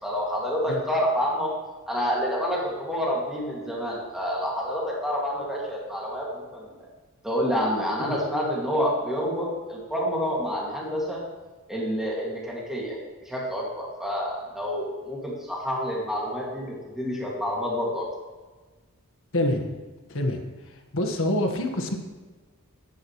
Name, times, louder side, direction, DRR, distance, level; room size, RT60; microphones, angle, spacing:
voice 1, 0.0-1.5 1.9-6.7 7.2-11.2 11.7-13.0 13.2-18.1, equal, ahead, -5 dB, 2.5 m, -28 dB
voice 2, 19.3-19.7 20.1-21.9, left 1 dB, 65° left, 4 dB, 1.7 m, -27 dB
16.5 x 10.5 x 3.3 m, 1.3 s
head